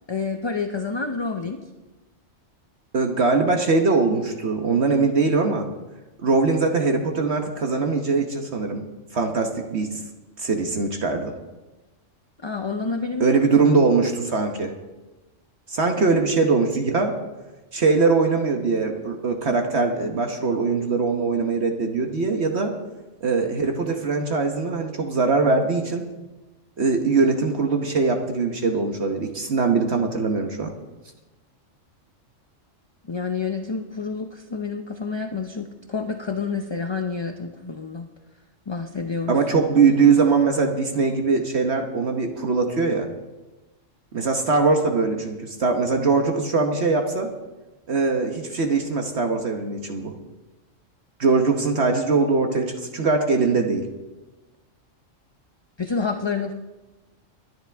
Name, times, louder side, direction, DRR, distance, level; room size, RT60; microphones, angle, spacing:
voice 1, 0.1-1.6 12.4-13.8 16.0-16.1 33.1-38.1 38.7-39.4 55.8-56.5, left 4 dB, 30° left, 5 dB, 0.5 m, -28 dB
voice 2, 2.9-5.6 6.2-8.9 9.1-10.0 10.4-11.3 13.2-14.7 15.7-17.1 17.7-22.7 23.2-26.1 26.8-30.7 39.3-43.1 44.1-47.3 47.9-50.1 51.2-53.8, right 4 dB, 60° right, 4 dB, 1.3 m, -21 dB
23.5 x 10.5 x 3.4 m, 1.1 s
omnidirectional pair, 1.3 m